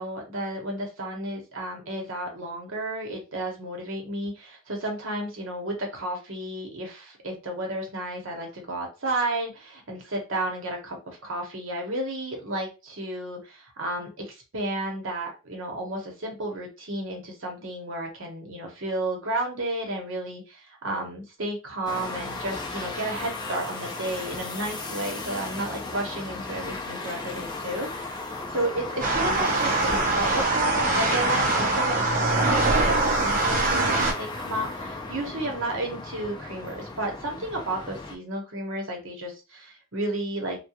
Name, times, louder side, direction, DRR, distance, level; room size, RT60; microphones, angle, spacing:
voice 1, 0.0-40.7, right 1 dB, 60° right, 1 dB, 0.9 m, -32 dB
sound 1, 21.9-38.2, left 3 dB, 20° left, 0.4 m, -35 dB
sound 2, 29.0-34.1, right 2 dB, 40° right, 0.6 m, -23 dB
2.3 x 2.2 x 2.8 m, 0.29 s
head